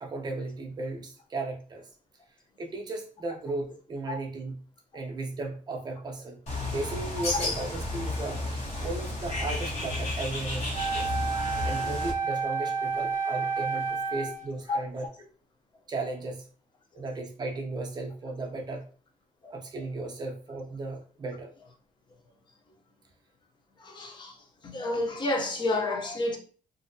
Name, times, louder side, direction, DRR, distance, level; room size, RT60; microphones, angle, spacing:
voice 1, 0.0-1.8 2.6-4.6 4.9-6.4 6.7-8.4 8.8-11.1 11.6-15.0 15.9-16.5 16.9-18.9 19.5-21.5, right 2 dB, 30° right, 0.7 m, -35 dB
Bird, 6.5-12.1, left 2 dB, 50° left, 1.1 m, -32 dB
Wind instrument woodwind instrument, 10.7-14.5, right 5 dB, 70° right, 0.7 m, -30 dB
voice 2, 23.8-24.4 24.6-26.4, left 2 dB, 35° left, 0.7 m, -30 dB
3.3 x 2.6 x 2.6 m
wide cardioid pair, 160°, 14 cm